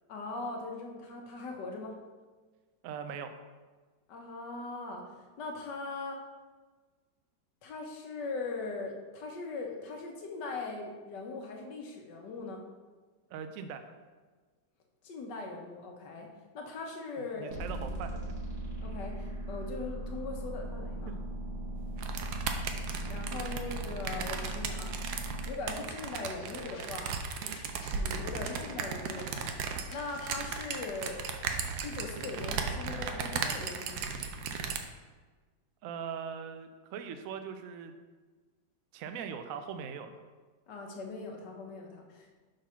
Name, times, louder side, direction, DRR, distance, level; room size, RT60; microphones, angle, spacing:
voice 1, 0.1-2.0 4.1-6.2 7.6-12.6 15.0-16.3 16.5-17.5 18.8-21.1 23.1-24.9 25.5-27.4 27.9-31.3 31.8-34.0 40.7-42.3, left 3 dB, 70° left, 2 dB, 1.5 m, -40 dB
voice 2, 2.8-3.3 13.3-13.9 17.3-18.1 35.8-37.9 38.9-40.1, right 7 dB, 85° right, 8 dB, 0.7 m, -40 dB
sound 1, 17.5-25.5, right 1 dB, 45° right, 1.7 m, -38 dB
sound 2, 22.0-34.8, right 5 dB, 70° right, 1.1 m, -36 dB
sound 3, 25.8-32.0, left 2 dB, 50° left, 1.2 m, -56 dB
6.5 x 3.9 x 5.6 m, 1.4 s
omnidirectional pair, 2.0 m